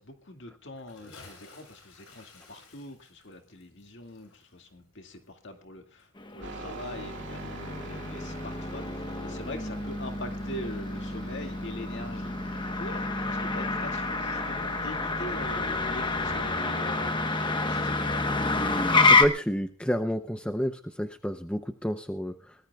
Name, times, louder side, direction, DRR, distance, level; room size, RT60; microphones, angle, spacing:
voice 1, 0.0-18.2, left 1 dB, 55° left, 4 dB, 2.2 m, -43 dB
Bathtub (filling or washing) / Splash splatter, 0.8-5.7 6.0-6.1, left 3 dB, 85° left, 7.5 m, -54 dB
Motor vehicle (road), 6.2-19.2, left 3 dB, 20° left, 1.1 m, -28 dB
sound 1, 6.4-16.5, right 1 dB, 55° right, 2.6 m, -42 dB
voice 2, 19.1-22.3, equal, 5° left, 7 dB, 0.6 m, -29 dB
22.5 x 19.0 x 2.4 m, 0.35 s
head